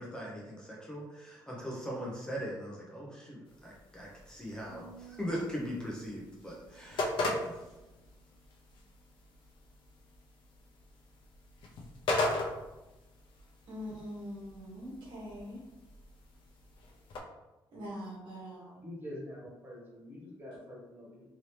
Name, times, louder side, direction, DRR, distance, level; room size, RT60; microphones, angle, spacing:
voice 1, 0.0-7.6, equal, 10° left, -4 dB, 0.7 m, -40 dB
sound 1, 3.4-17.2, left 2 dB, 75° left, 0.6 m, -39 dB
sound 2, 4.7-8.1, right 6 dB, 40° left, 1.0 m, -56 dB
voice 2, 13.7-15.6 17.7-18.8, equal, 65° right, -4 dB, 1.2 m, -43 dB
voice 3, 18.8-21.3, left 1 dB, 25° right, -5 dB, 1.3 m, -45 dB
2.9 x 2.7 x 3.2 m, 1.0 s
cardioid pair, 130°, 9 cm